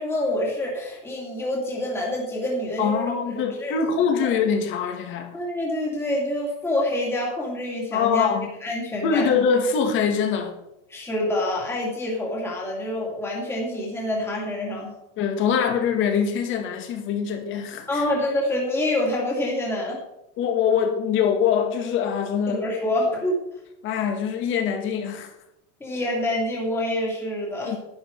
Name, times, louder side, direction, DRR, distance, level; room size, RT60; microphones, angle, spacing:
voice 1, 0.0-3.7 5.3-8.3 8.6-9.4 10.9-14.9 17.9-20.0 22.5-23.4 25.8-27.7, left 1 dB, 5° left, 2.5 m, -26 dB
voice 2, 2.8-5.4 7.9-8.5 9.0-10.5 15.2-18.0 20.4-22.7 23.8-25.3 27.7-27.8, left 6 dB, 35° left, 2.0 m, -23 dB
11.5 x 11.0 x 4.6 m
supercardioid pair, 165°, 36 cm